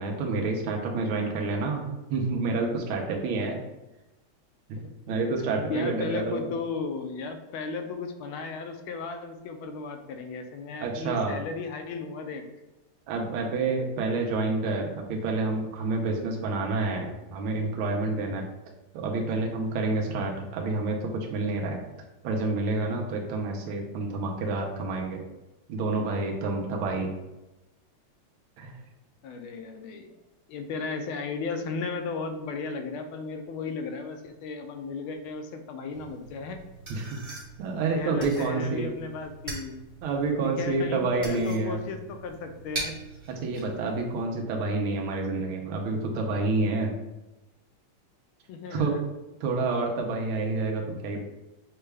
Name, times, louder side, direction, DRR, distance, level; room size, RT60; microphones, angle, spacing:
voice 1, 0.0-3.6 4.7-6.5 10.8-11.4 13.1-18.5 18.9-21.8 22.2-25.2 25.7-27.1 28.6-28.8 36.9-38.9 40.0-41.8 43.4-46.9 48.7-49.0 49.4-51.2, right 3 dB, 80° right, 1 dB, 1.5 m, -28 dB
voice 2, 5.5-12.4 14.4-14.5 29.2-30.2 30.5-36.6 38.0-39.8 40.3-42.9 48.5-49.0, left 4 dB, 80° left, 6 dB, 1.4 m, -35 dB
sound 1, 35.9-44.3, right 2 dB, 30° right, 1.0 m, -42 dB
6.6 x 2.3 x 3.3 m, 1.0 s
omnidirectional pair, 2.4 m